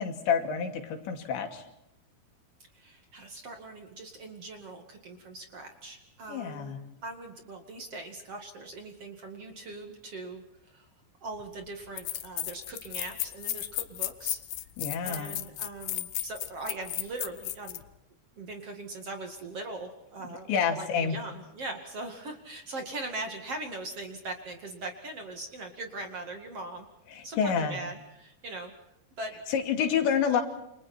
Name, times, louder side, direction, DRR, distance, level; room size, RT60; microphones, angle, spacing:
voice 1, 0.0-1.6 6.3-6.8 14.8-15.4 20.5-21.2 27.1-27.8 29.5-30.4, left 7 dB, 90° left, 5 dB, 4.8 m, -28 dB
voice 2, 2.7-6.8 7.0-10.4 10.7-10.9 11.2-14.4 15.0-17.8 18.4-26.9 27.2-28.7 29.2-29.4, right 2 dB, 40° right, 5 dB, 2.6 m, -40 dB
sound 1, 11.4-11.5 12.0-17.8, left 14 dB, 70° left, 2.2 m, -34 dB
29.0 x 27.0 x 4.4 m, 0.83 s
omnidirectional pair, 5.0 m